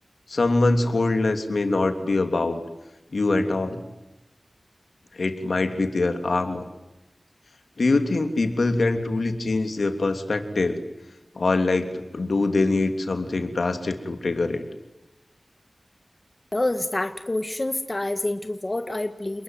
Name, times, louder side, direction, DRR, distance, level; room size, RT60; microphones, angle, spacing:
voice 1, 0.3-2.6 3.1-3.8 5.1-6.6 7.8-10.8 11.3-14.6, left 3 dB, 80° left, 7 dB, 3.2 m, -23 dB
voice 2, 16.5-19.4, left 2 dB, 35° left, 8 dB, 1.8 m, -27 dB
29.0 x 21.0 x 9.6 m, 0.97 s
wide cardioid pair, 60°, 0 cm